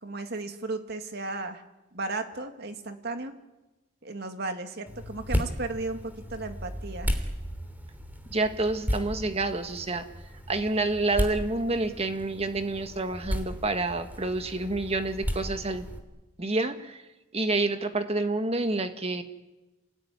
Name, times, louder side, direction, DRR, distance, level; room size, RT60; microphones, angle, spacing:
voice 1, 0.0-1.6 1.9-3.3 4.0-7.2, right 2 dB, 55° right, 7 dB, 2.2 m, -35 dB
sound 1, 4.9-16.0, equal, 10° right, 3.0 m, -34 dB
voice 2, 8.3-10.0 10.5-15.9 16.4-17.0 17.3-19.2, right 2 dB, 30° right, 8 dB, 1.8 m, -28 dB
28.0 x 19.0 x 9.9 m, 1.1 s
head